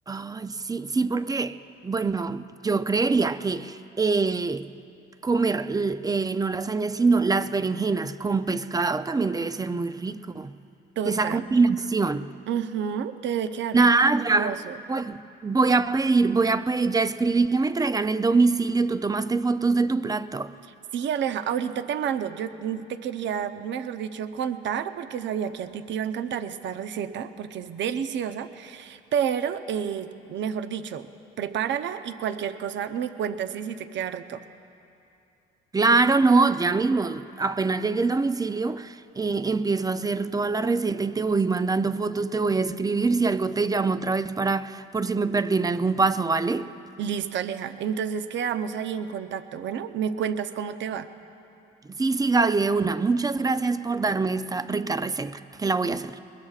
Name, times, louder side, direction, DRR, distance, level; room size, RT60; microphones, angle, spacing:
voice 1, 0.1-1.6 1.8-4.7 5.2-10.5 11.1-12.3 13.7-14.6 14.9-20.5 35.7-46.7 52.0-56.2, right 3 dB, 15° right, 0.5 m, -24 dB
voice 2, 11.0-11.5 12.5-13.9 14.3-14.8 20.9-31.1 31.4-34.4 47.0-51.1, right 8 dB, 60° right, 0.7 m, -30 dB
22.0 x 20.5 x 2.4 m
supercardioid pair, 75°, 21 cm